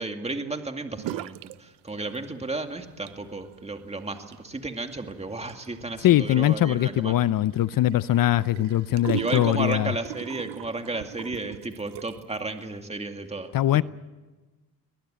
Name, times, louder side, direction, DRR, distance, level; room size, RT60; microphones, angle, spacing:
voice 1, 0.0-7.1 9.2-13.5, right 3 dB, 15° right, 2.3 m, -33 dB
sound 1, 1.0-1.6 1.9-2.5 2.9-12.4, right 16 dB, 80° right, 0.7 m, -39 dB
voice 2, 6.0-9.9 13.5-13.8, left 13 dB, 55° left, 0.6 m, -22 dB
23.0 x 19.5 x 9.0 m
cardioid pair, 105°, 40 cm